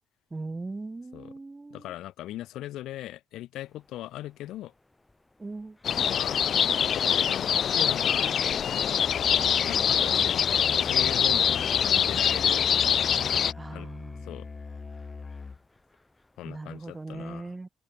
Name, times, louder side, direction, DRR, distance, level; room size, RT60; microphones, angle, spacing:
voice 1, 0.3-1.9 5.4-5.8 13.5-14.3 16.4-17.7, right 3 dB, 20° right, 1.2 m, -39 dB
voice 2, 1.7-4.7 6.1-6.5 6.9-8.3 9.6-12.7 13.7-13.9 14.3-14.5 16.4-17.5, left 14 dB, 85° left, 2.2 m, -39 dB
sound 1, 3.5-17.1, left 2 dB, 15° left, 6.0 m, -65 dB
sound 2, 5.8-13.5, left 8 dB, 60° left, 0.4 m, -24 dB
Musical instrument, 9.0-15.8, left 4 dB, 30° left, 1.6 m, -42 dB
open air
cardioid pair, 90°, 0 cm